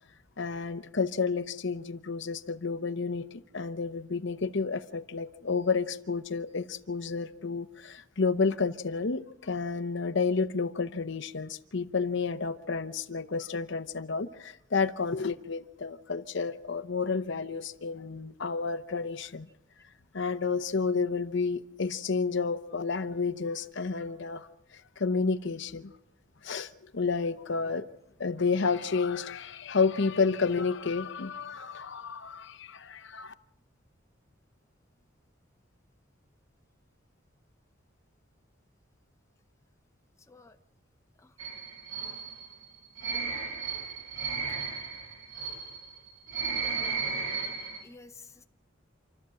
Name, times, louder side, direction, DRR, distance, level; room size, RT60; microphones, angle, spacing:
voice 1, 0.4-19.5 20.1-25.9 26.4-27.9 28.2-33.3, left 4 dB, 65° left, 0.8 m, -31 dB
sound 1, 41.4-47.8, right 5 dB, 70° right, 2.9 m, -35 dB
voice 2, 47.8-48.4, left 3 dB, 15° left, 0.7 m, -51 dB
27.5 x 13.0 x 7.6 m
head